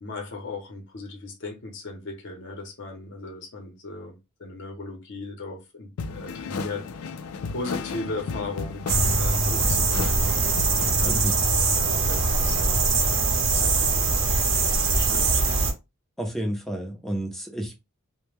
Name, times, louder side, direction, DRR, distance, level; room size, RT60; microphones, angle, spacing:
voice 1, 0.0-7.1 7.5-8.8 9.1-10.2 10.7-14.2 15.0-15.4, left 3 dB, 55° left, 0.7 m, -37 dB
sound 1, 6.0-11.1, left 5 dB, 90° left, 0.3 m, -34 dB
sound 2, 8.9-15.7, right 3 dB, 65° right, 0.7 m, -22 dB
voice 2, 16.2-17.8, right 1 dB, ahead, 0.5 m, -30 dB
2.1 x 2.1 x 3.1 m
head